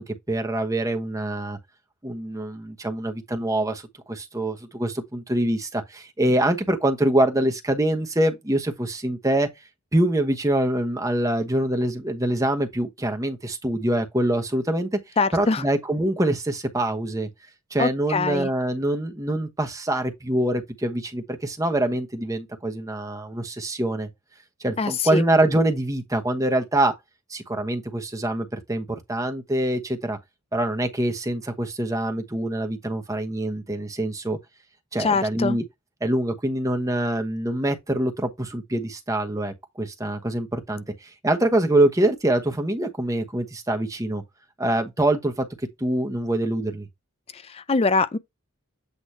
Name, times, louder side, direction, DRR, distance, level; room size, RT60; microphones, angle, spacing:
voice 1, 0.0-1.6 2.0-3.8 4.1-9.5 9.9-14.9 15.3-17.3 17.7-24.1 24.6-26.9 27.3-30.2 30.5-34.4 34.9-35.6 36.0-44.2 44.6-45.5 45.8-46.9, right 1 dB, 15° right, 1.0 m, -24 dB
voice 2, 15.2-15.6 17.8-18.5 24.8-25.2 35.0-35.6 47.3-48.2, left 4 dB, 25° left, 0.4 m, -23 dB
8.3 x 2.9 x 4.3 m
head